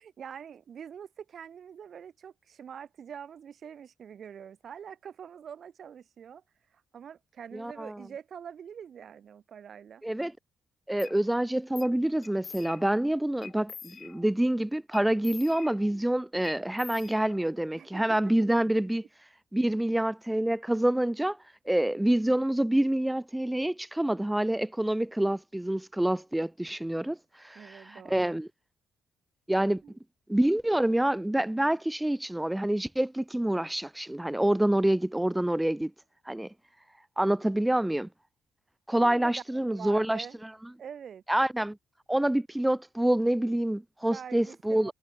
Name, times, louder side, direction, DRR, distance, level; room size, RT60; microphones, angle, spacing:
voice 1, 0.0-6.4 6.7-10.0 17.8-18.0 27.5-28.4 29.8-30.0 38.9-40.4 40.8-41.2 44.0-44.9, right 8 dB, 55° right, 2.2 m, -45 dB
voice 2, 7.5-7.9 10.0-10.3 10.9-19.0 19.5-21.4 21.7-28.5 29.5-29.8 30.3-35.9 36.3-36.5 37.2-38.1 38.9-40.3 41.3-41.8 42.1-44.9, right 1 dB, 5° right, 0.5 m, -27 dB
sound 1, 11.0-11.2 11.8-12.0 12.2-13.0 13.4-14.4 14.9-16.1 16.4-17.7, left 7 dB, 50° left, 2.9 m, -46 dB
cardioid pair, 90°, 0 cm